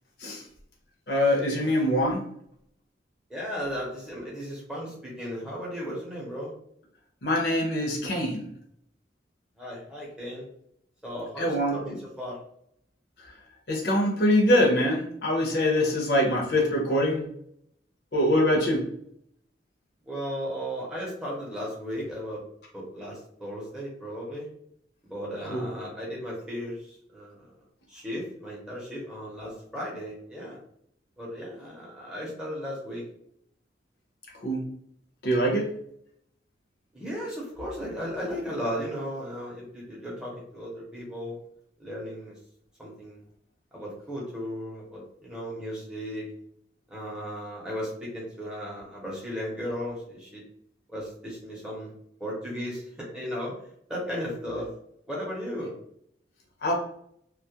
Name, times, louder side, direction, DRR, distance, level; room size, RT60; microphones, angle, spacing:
voice 1, 1.1-2.2 7.2-8.5 11.4-11.8 13.7-17.3 18.1-18.9 25.5-25.6 34.4-34.7 35.2-35.7 56.6-56.7, left 1 dB, 60° left, 0 dB, 0.6 m, -24 dB
voice 2, 3.3-6.5 9.6-10.5 11.0-12.4 20.1-22.4 22.7-24.5 25.0-27.5 27.9-30.6 31.2-33.0 36.9-41.4 41.8-42.3 42.8-43.2 43.7-46.3 46.9-50.4 50.9-51.9 52.2-53.5 53.9-54.7 55.1-55.7, equal, 5° right, -5 dB, 0.6 m, -35 dB
2.2 x 2.0 x 2.8 m, 0.69 s
head